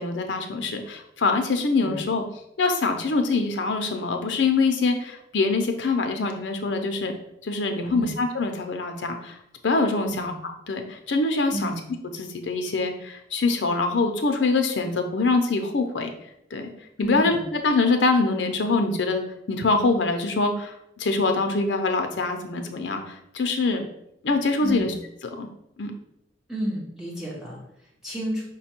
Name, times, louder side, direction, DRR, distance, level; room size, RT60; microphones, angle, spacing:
voice 1, 0.0-2.2 2.6-7.2 7.4-9.4 9.6-10.3 10.7-11.7 12.1-16.1 16.5-16.7 17.0-17.3 17.6-23.8 24.2-24.9 25.4-25.5 25.8-25.9, left 3 dB, 80° left, 6 dB, 0.6 m, -24 dB
voice 2, 7.9-8.2 10.0-10.4 11.5-11.8 17.0-17.5 24.6-24.9 26.5-28.4, right 1 dB, 5° right, -5 dB, 0.9 m, -32 dB
5.0 x 2.2 x 4.3 m, 0.79 s
head